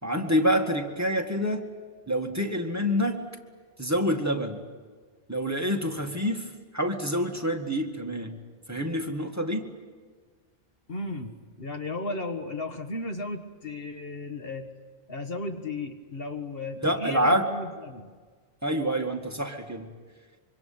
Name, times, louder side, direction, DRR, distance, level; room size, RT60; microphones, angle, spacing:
voice 1, 0.0-1.6 2.1-3.2 3.8-4.6 5.3-8.4 8.7-9.7 16.8-17.5 18.6-19.9, equal, 15° right, 2 dB, 2.0 m, -27 dB
voice 2, 10.9-14.7 15.1-18.1, left 2 dB, 65° left, 6 dB, 1.9 m, -35 dB
25.5 x 24.5 x 8.8 m, 1.6 s
omnidirectional pair, 1.0 m